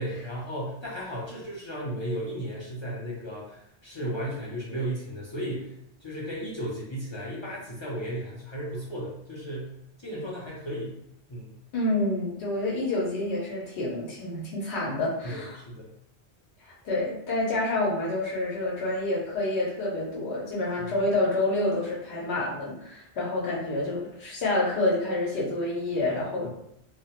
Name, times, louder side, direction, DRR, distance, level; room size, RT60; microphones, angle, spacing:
voice 1, 0.0-9.7 10.0-11.0 11.3-11.5 15.2-15.9 26.4-26.5, right 1 dB, 40° left, -6 dB, 0.4 m, -35 dB
voice 2, 11.7-15.6 16.7-26.5, left 2 dB, 75° left, -5 dB, 0.9 m, -28 dB
2.2 x 2.0 x 2.8 m, 0.76 s
omnidirectional pair, 1.1 m